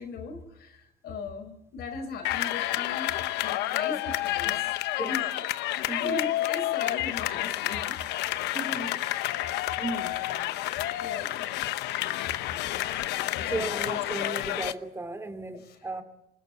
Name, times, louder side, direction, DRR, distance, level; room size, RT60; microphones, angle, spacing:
voice 1, 0.0-3.1 3.4-5.2 6.0-7.8 11.0-11.5 13.4-13.9 15.6-15.9, left 4 dB, 70° left, 5.3 m, -38 dB
sound 1, 2.2-14.7, left 15 dB, 85° left, 0.9 m, -30 dB
voice 2, 5.0-5.3 5.9-6.1 8.5-9.0 9.8-10.2 10.5-10.7 13.5-16.0, right 2 dB, 15° right, 2.9 m, -35 dB
25.5 x 21.0 x 8.2 m
cardioid pair, 110°, 17 cm